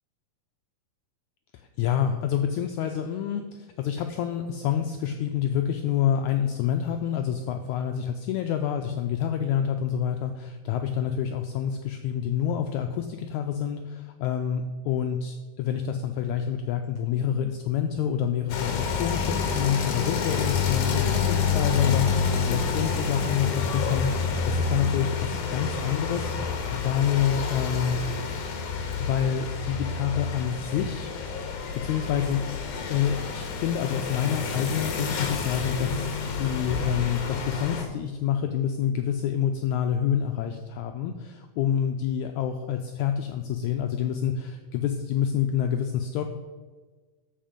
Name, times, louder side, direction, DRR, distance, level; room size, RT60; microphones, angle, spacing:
voice 1, 1.5-28.0 29.0-31.1 31.8-32.6 32.9-46.2, left 9 dB, 90° left, 6 dB, 1.6 m, -27 dB
sound 1, 18.5-37.8, left 5 dB, 65° left, 2.5 m, -28 dB
13.0 x 5.1 x 5.1 m, 1.4 s
omnidirectional pair, 4.0 m